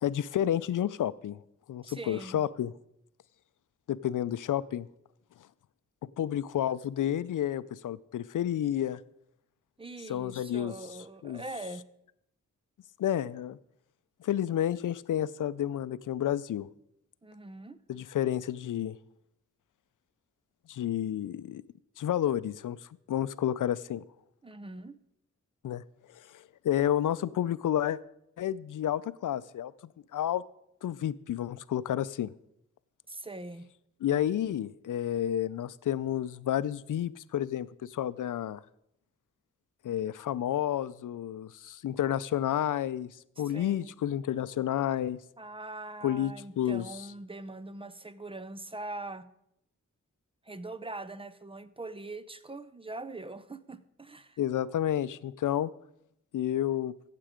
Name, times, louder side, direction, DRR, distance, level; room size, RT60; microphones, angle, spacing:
voice 1, 0.0-1.4 1.7-2.7 3.9-4.9 6.2-9.0 10.1-10.7 11.2-11.4 13.0-13.6 14.2-16.7 17.9-19.0 20.7-21.6 22.0-22.8 23.1-24.0 25.6-25.8 26.1-28.0 28.4-29.7 30.1-30.4 30.8-32.3 34.0-38.6 39.8-43.1 43.4-45.2 46.0-46.8 54.4-55.7 56.3-56.9, left 11 dB, 85° left, 17 dB, 0.5 m, -30 dB
voice 2, 1.8-2.4 9.8-11.8 17.2-17.8 24.4-25.0 33.1-33.7 43.4-43.9 45.4-49.3 50.4-54.4, right 2 dB, 20° right, 14 dB, 0.6 m, -42 dB
15.0 x 7.6 x 5.0 m, 0.78 s
wide cardioid pair, 100°, 30 cm